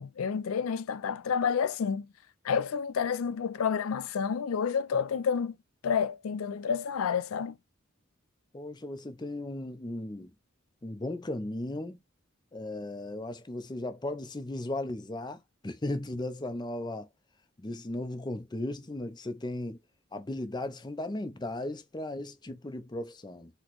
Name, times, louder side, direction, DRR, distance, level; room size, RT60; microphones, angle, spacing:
voice 1, 0.0-2.1 2.4-5.6 5.8-7.6, left 6 dB, 90° left, 0.4 m, -29 dB
voice 2, 8.5-10.3 10.8-12.0 12.5-17.1 17.6-19.8 20.1-23.5, left 1 dB, 20° left, 0.5 m, -36 dB
4.1 x 2.1 x 3.0 m
head